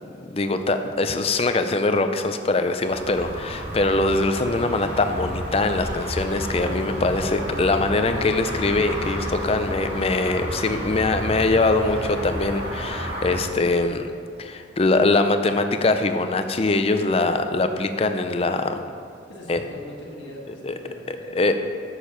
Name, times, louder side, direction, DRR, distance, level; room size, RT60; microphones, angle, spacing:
voice 1, 0.2-14.1 14.4-18.7 19.5-19.6 20.6-20.7 21.1-21.5, left 2 dB, 30° left, 8 dB, 0.5 m, -22 dB
sound 1, 2.9-13.4, equal, 55° right, 2.3 m, -31 dB
voice 2, 19.3-21.5, equal, 85° left, -2 dB, 1.4 m, -41 dB
7.5 x 6.6 x 5.6 m, 2.4 s
head